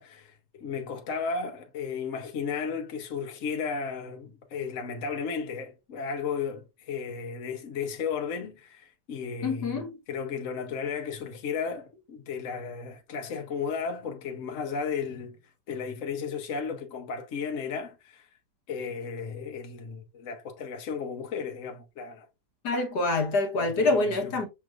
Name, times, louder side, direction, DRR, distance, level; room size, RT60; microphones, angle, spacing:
voice 1, 0.0-9.8 10.1-15.4 15.7-18.2 18.7-22.3 23.6-24.3, left 5 dB, 55° left, 1.2 m, -34 dB
voice 2, 9.4-10.0 22.6-24.5, left 2 dB, 75° left, 1.6 m, -26 dB
7.1 x 3.1 x 2.4 m
omnidirectional pair, 1.8 m